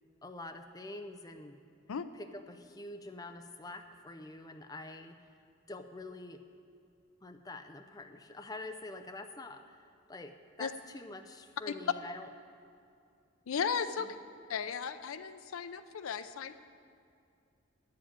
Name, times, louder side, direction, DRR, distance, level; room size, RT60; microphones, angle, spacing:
voice 1, 0.2-1.6 2.2-5.2 5.7-6.4 7.2-9.8 10.1-12.3 14.0-14.2, left 2 dB, 20° left, 6 dB, 0.5 m, -46 dB
voice 2, 13.5-14.2 14.5-16.5, left 6 dB, 80° left, 12 dB, 0.5 m, -35 dB
10.5 x 7.6 x 8.6 m, 2.5 s
head